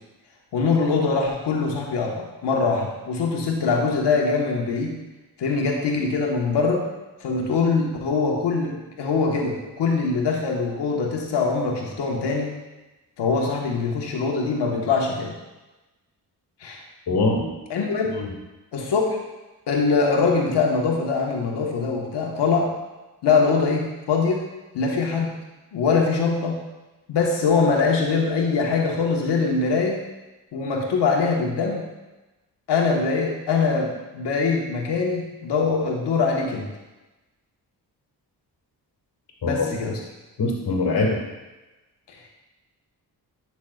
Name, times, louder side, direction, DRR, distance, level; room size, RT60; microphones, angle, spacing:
voice 1, 0.5-4.9 5.4-6.8 7.2-12.5 13.2-15.3 16.6-16.8 17.7-18.1 18.7-19.2 19.7-22.7 23.2-24.4 24.7-25.3 25.7-26.6 27.1-30.0 30.5-31.8 32.7-36.7 39.4-40.0 42.1-42.2, left 4 dB, 85° left, 0 dB, 1.5 m, -23 dB
voice 2, 17.1-17.5 18.2-18.3 39.4-39.7 40.4-41.2, left 3 dB, 65° left, 0 dB, 2.0 m, -22 dB
11.0 x 6.0 x 2.4 m, 1.1 s
cardioid pair, 60°, 41 cm